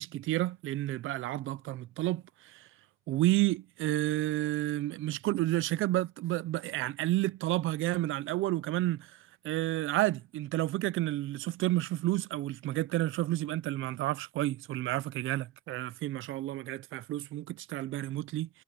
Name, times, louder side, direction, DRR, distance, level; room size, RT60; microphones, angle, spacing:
voice 1, 0.0-2.7 3.1-9.1 9.4-18.5, right 16 dB, 85° right, 0.6 m, -31 dB
cardioid pair, 90°, 20 cm